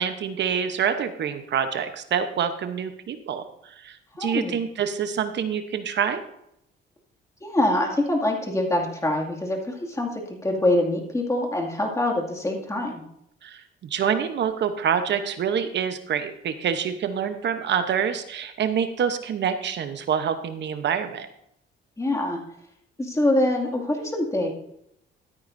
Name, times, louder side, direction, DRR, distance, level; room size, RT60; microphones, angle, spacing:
voice 1, 0.0-6.2 13.4-21.3, right 7 dB, 65° right, 9 dB, 1.0 m, -26 dB
voice 2, 4.2-4.6 7.4-13.0 22.0-22.4 23.0-24.5, left 1 dB, 15° left, 1 dB, 2.3 m, -24 dB
13.0 x 9.6 x 2.7 m, 0.76 s
cardioid pair, 90°, 20 cm